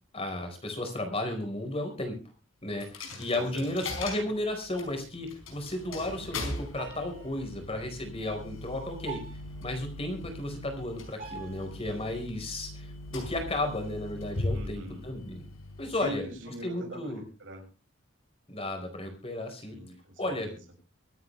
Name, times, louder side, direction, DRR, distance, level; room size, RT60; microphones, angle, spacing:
voice 1, 0.1-2.2 2.6-9.2 9.6-15.4 15.8-16.3 16.6-17.2 18.5-19.8 20.2-20.5, left 1 dB, 30° left, 4 dB, 4.7 m, -34 dB
Coin (dropping), 2.8-16.5, left 2 dB, 80° left, 4.9 m, -40 dB
voice 2, 3.3-3.7 14.5-15.0 16.0-17.6 19.7-20.6, right 1 dB, 70° right, 0 dB, 6.8 m, -43 dB
sound 1, 6.8-7.4 9.1-9.4 11.2-11.7, right 5 dB, 40° right, 4.2 m, -43 dB
24.5 x 9.4 x 3.4 m, 0.33 s
head